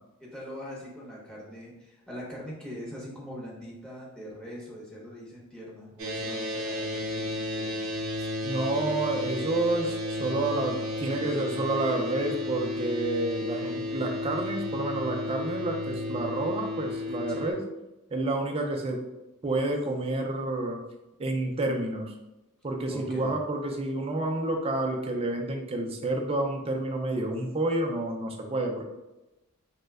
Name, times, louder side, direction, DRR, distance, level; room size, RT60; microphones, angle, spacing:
voice 1, 0.2-7.8 17.3-17.5 22.9-23.3, equal, 5° left, -5 dB, 0.7 m, -42 dB
sound 1, 6.0-17.5, left 1 dB, 65° right, 0.8 m, -33 dB
voice 2, 8.4-17.6 18.1-19.1 19.4-20.8 21.2-22.1 22.6-28.8, right 2 dB, 25° right, 3 dB, 0.4 m, -29 dB
3.1 x 2.1 x 3.4 m, 1.0 s
head